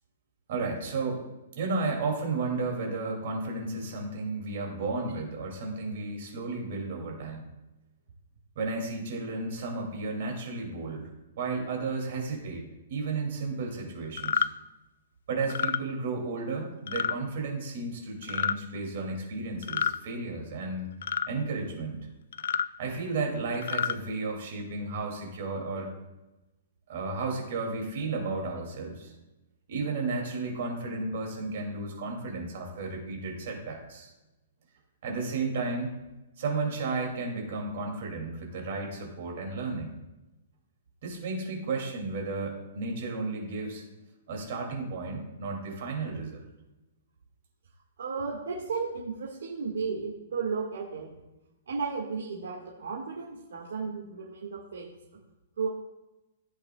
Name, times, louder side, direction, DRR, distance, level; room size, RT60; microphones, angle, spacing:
voice 1, 0.5-1.2 1.6-7.5 8.6-11.1 11.4-14.5 15.3-20.9 21.3-22.1 22.8-25.9 26.9-29.1 29.7-34.1 35.0-35.9 36.4-40.0 41.0-43.8 44.3-46.4, right 3 dB, 45° right, 0 dB, 2.6 m, -33 dB
sound 1, 14.2-14.5 15.4-15.8 16.9-17.2 18.2-18.6 19.6-20.0 21.0-21.3 22.3-22.7 23.5-24.0, left 7 dB, 65° left, 0.3 m, -28 dB
voice 2, 48.0-51.1 51.7-54.9 55.6-55.7, right 5 dB, 90° right, -3 dB, 1.7 m, -34 dB
15.0 x 8.0 x 2.3 m, 1.0 s
hypercardioid pair, 175°, 0 cm